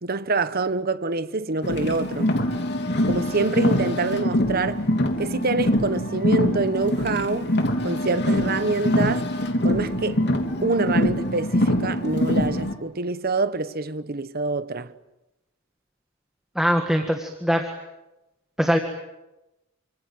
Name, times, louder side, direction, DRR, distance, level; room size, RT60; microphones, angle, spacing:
voice 1, 0.0-2.3 3.1-4.8 5.2-7.5 7.8-9.3 9.6-10.2 10.6-14.9, right 3 dB, 45° right, 1.1 m, -26 dB
Car, 1.6-12.7, left 1 dB, 55° left, 3.1 m, -24 dB
voice 2, 16.6-17.7 18.6-18.8, equal, ahead, 1.8 m, -22 dB
28.5 x 25.5 x 7.9 m
head